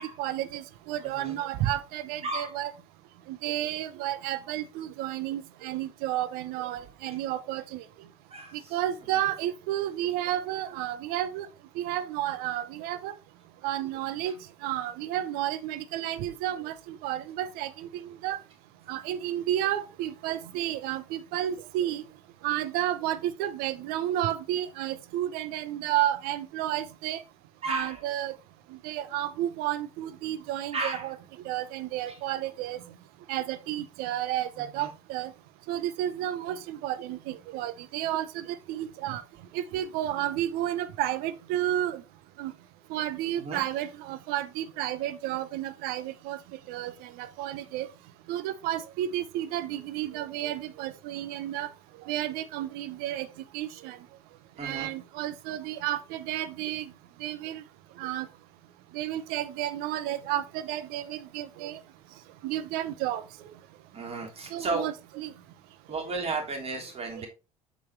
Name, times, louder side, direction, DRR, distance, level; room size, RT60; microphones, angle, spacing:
voice 1, 0.2-2.7 3.3-7.8 8.7-11.5 11.8-13.2 13.6-14.3 14.6-18.4 18.9-22.0 22.4-27.2 27.7-28.3 28.8-31.1 31.4-32.8 33.3-35.3 35.7-39.2 39.5-42.0 42.4-42.5 42.9-46.4 46.7-47.9 48.3-51.7 52.1-53.3 53.5-54.0 54.6-56.8 57.2-57.6 58.0-58.3 58.9-61.8 62.4-63.2 64.5-65.3, right 12 dB, 55° right, 0.8 m, -31 dB
voice 2, 2.2-2.6 8.3-8.7 14.2-14.3 27.6-28.0 30.7-31.1 32.1-32.2 34.6-34.9 43.4-43.6 54.6-54.9 63.9-64.9 65.9-67.3, right 3 dB, 35° right, 3.2 m, -34 dB
8.5 x 4.2 x 4.3 m
figure-of-eight pair, 55°, 18 cm